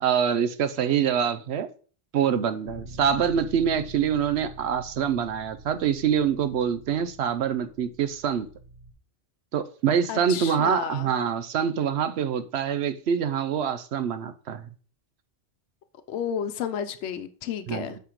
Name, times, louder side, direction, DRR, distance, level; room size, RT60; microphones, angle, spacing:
voice 1, 0.0-1.7 2.1-8.5 9.5-14.6 17.7-17.9, right 8 dB, 70° right, 0.9 m, -25 dB
Bass guitar, 2.7-8.9, right 2 dB, 85° right, 1.8 m, -46 dB
voice 2, 10.1-11.1 16.1-18.0, left 8 dB, 80° left, 0.9 m, -32 dB
8.7 x 5.7 x 3.0 m
omnidirectional pair, 1.2 m